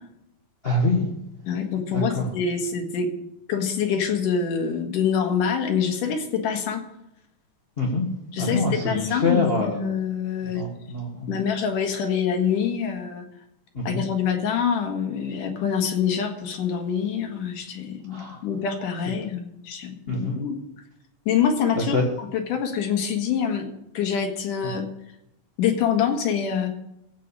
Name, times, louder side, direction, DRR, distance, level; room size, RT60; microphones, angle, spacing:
voice 1, 0.6-1.1 1.9-2.3 7.8-8.1 8.4-9.8 10.5-11.3 13.7-14.0 18.1-18.4 20.1-20.4 21.9-22.0, left 2 dB, 30° left, -1 dB, 1.1 m, -25 dB
voice 2, 1.4-3.1 3.5-6.8 8.3-10.7 11.3-13.3 13.8-20.6 21.3-23.7 23.9-24.8 25.6-26.7, left 7 dB, 80° left, 3 dB, 3.1 m, -25 dB
15.5 x 5.3 x 8.4 m, 0.83 s
omnidirectional pair, 3.7 m